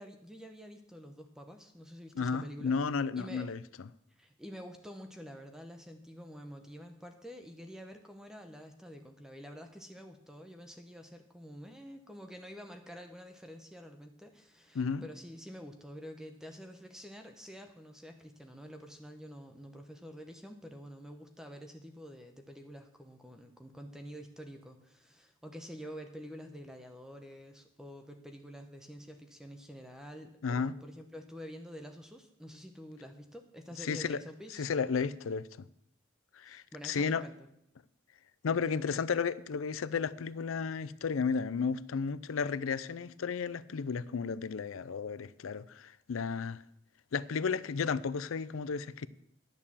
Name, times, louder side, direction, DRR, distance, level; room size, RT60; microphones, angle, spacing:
voice 1, 0.0-2.7 3.2-3.5 4.2-34.7 36.4-37.5 38.7-39.0, equal, 5° right, 0.8 m, -48 dB
voice 2, 2.2-3.6 14.7-15.0 30.4-30.7 33.8-34.2 34.5-35.7 36.3-37.2 38.4-46.6 47.1-49.1, left 5 dB, 85° left, 0.5 m, -33 dB
10.5 x 6.8 x 7.3 m
head